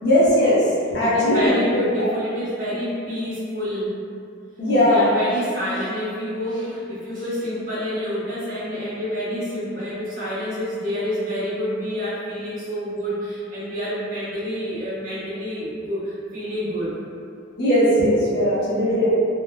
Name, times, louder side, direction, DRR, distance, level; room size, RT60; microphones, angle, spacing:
voice 1, 0.0-0.6 0.9-1.5 2.0-2.1 4.6-5.1 17.6-19.1, left 1 dB, 60° left, -8 dB, 0.8 m, -18 dB
voice 2, 1.0-4.0 4.8-16.0 16.3-16.9, equal, 45° right, -11 dB, 1.1 m, -28 dB
3.2 x 2.1 x 2.2 m, 2.4 s
head